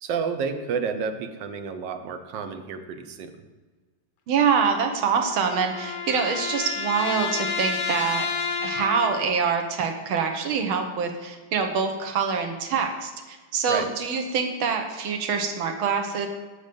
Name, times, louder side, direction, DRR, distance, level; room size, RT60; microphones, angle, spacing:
voice 1, 0.0-3.3 13.7-13.9, right 6 dB, 70° right, 7 dB, 1.4 m, -30 dB
voice 2, 4.3-8.3 8.6-16.3, right 6 dB, 90° right, 4 dB, 1.8 m, -25 dB
sound 1, 4.8-9.4, left 5 dB, 75° left, 1.7 m, -30 dB
8.1 x 6.9 x 5.2 m, 1.4 s
omnidirectional pair, 2.2 m